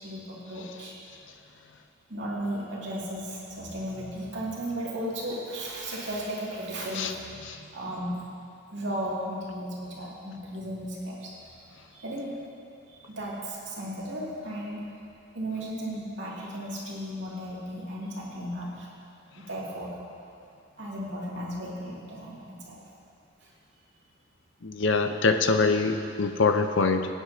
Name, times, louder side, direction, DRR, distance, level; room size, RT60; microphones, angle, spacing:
voice 1, 0.0-0.9 2.1-8.2 8.7-11.6 11.9-12.3 12.9-14.8 15.3-18.9 19.4-19.9 20.8-22.8, equal, 65° right, -6 dB, 2.4 m, -35 dB
voice 2, 24.6-27.1, left 4 dB, 70° left, 6 dB, 0.7 m, -24 dB
20.5 x 9.6 x 2.8 m, 2.5 s
head